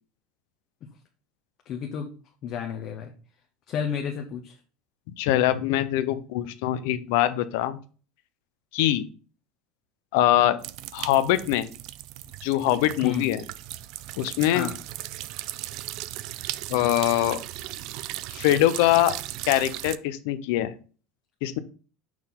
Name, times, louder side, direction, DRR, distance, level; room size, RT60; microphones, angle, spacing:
voice 1, 1.7-2.1 2.4-3.1 3.7-4.6 13.0-13.3 14.5-14.7, left 7 dB, 40° left, 3 dB, 0.9 m, -30 dB
voice 2, 5.2-7.8 8.7-9.1 10.1-10.6 10.9-11.7 12.4-13.4 14.2-14.7 16.7-17.4 18.3-19.2 19.5-20.7 21.4-21.6, left 13 dB, 70° left, 12 dB, 0.6 m, -23 dB
sound 1, 10.6-20.0, right 15 dB, 55° right, 0.3 m, -37 dB
6.0 x 4.4 x 3.7 m, 0.38 s
supercardioid pair, 145°, 0 cm